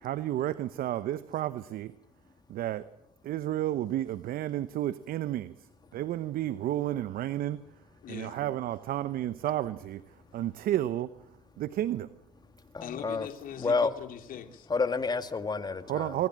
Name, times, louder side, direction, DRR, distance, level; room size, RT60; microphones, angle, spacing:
voice 1, 0.0-1.9 2.5-2.9 3.2-5.5 5.9-7.6 8.1-10.0 10.3-11.1 11.6-12.1 15.9-16.3, right 13 dB, 55° right, 14 dB, 0.9 m, -31 dB
voice 2, 8.0-8.5 9.4-9.5 12.8-14.7, left 9 dB, 55° left, 6 dB, 3.1 m, -41 dB
voice 3, 12.7-13.3 13.6-13.9 14.7-16.2, left 4 dB, 25° left, 9 dB, 2.0 m, -29 dB
26.0 x 22.0 x 7.6 m, 0.88 s
supercardioid pair, 80°, 18 cm